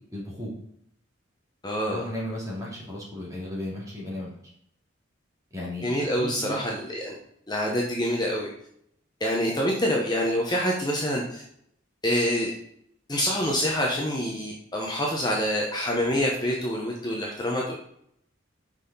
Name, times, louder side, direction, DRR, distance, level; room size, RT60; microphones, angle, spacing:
voice 1, 0.1-0.5 1.9-4.3 5.5-5.9 6.2-6.6, left 1 dB, 15° right, -5 dB, 2.6 m, -34 dB
voice 2, 1.6-2.0 5.8-7.1 7.5-8.5 9.2-11.4 12.0-12.5 13.1-17.7, equal, 20° left, -2 dB, 1.0 m, -26 dB
6.3 x 5.7 x 4.1 m, 0.72 s
head